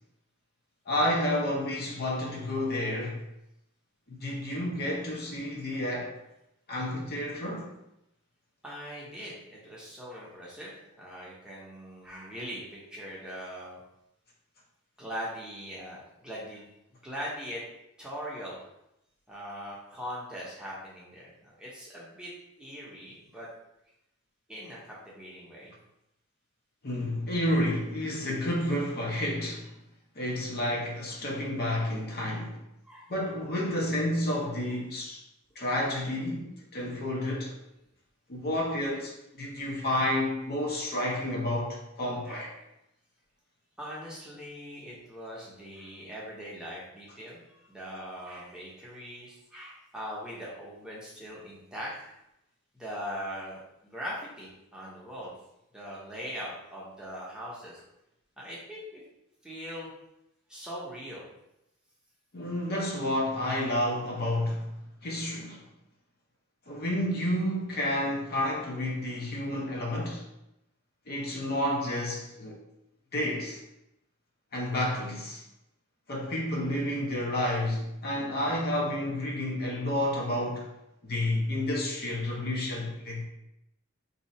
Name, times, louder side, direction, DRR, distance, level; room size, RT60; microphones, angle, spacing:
voice 1, 0.9-3.2 4.1-6.1 6.7-7.7 26.8-29.7 30.2-32.6 33.1-35.2 35.6-36.5 36.7-37.5 38.3-42.5 62.3-64.7 65.0-65.6 66.7-70.2 71.1-72.6 73.1-73.6 74.5-75.4 76.1-80.7 81.0-83.2, left 1 dB, 45° left, -2 dB, 0.8 m, -30 dB
voice 2, 8.6-13.8 15.0-17.6 18.0-18.7 19.3-22.3 22.6-23.5 24.5-25.8 32.8-33.1 39.9-40.1 41.0-41.3 42.2-42.5 43.8-52.1 52.7-55.3 55.7-57.8 58.4-59.0 59.4-59.9 60.5-61.3, equal, 5° right, -6 dB, 0.8 m, -41 dB
2.7 x 2.4 x 4.2 m, 0.85 s
head